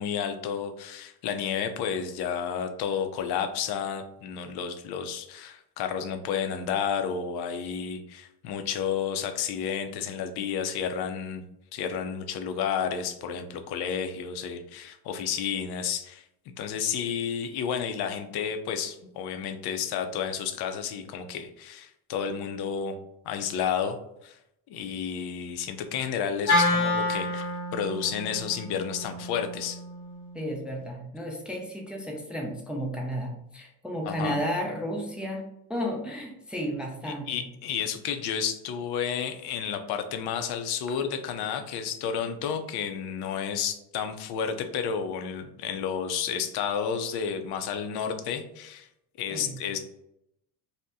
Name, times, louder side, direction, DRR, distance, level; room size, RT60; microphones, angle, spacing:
voice 1, 0.0-11.4 11.7-16.2 16.6-22.9 23.2-24.4 24.7-29.8 34.1-34.4 37.3-48.9 49.2-49.8, left 7 dB, 60° left, 7 dB, 0.6 m, -31 dB
Wind instrument woodwind instrument, 26.5-30.7, left 2 dB, 80° left, 0.9 m, -29 dB
voice 2, 30.3-37.4 49.3-49.6, equal, ahead, 0 dB, 0.4 m, -33 dB
2.7 x 2.1 x 3.5 m, 0.80 s
cardioid pair, 105°, 44 cm